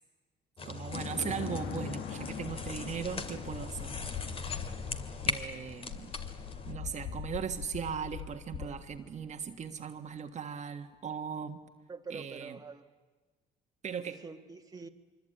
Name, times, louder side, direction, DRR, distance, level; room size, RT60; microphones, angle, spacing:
sound 1, 0.6-6.7, left 3 dB, 35° left, 2.2 m, -39 dB
voice 1, 0.6-3.9 5.3-6.1 6.7-11.6 12.1-12.6 13.8-14.2, right 7 dB, 45° right, 5 dB, 1.5 m, -38 dB
sound 2, 0.9-9.4, left 8 dB, 75° left, 1.8 m, -42 dB
voice 2, 11.9-12.9 14.0-14.9, right 4 dB, 20° right, 4 dB, 1.6 m, -46 dB
25.0 x 24.0 x 9.0 m, 1.3 s
cardioid pair, 110°, 17 cm